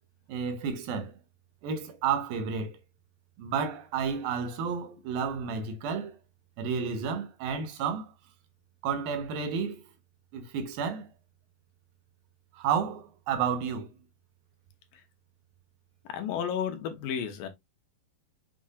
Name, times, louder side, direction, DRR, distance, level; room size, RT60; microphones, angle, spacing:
voice 1, 0.3-1.1 1.6-2.8 3.4-6.2 6.6-8.1 8.8-9.8 10.3-11.1 12.5-13.9, right 6 dB, 80° right, 3.0 m, -31 dB
voice 2, 16.1-17.5, left 8 dB, 80° left, 2.8 m, -32 dB
7.5 x 5.3 x 2.4 m
omnidirectional pair, 4.2 m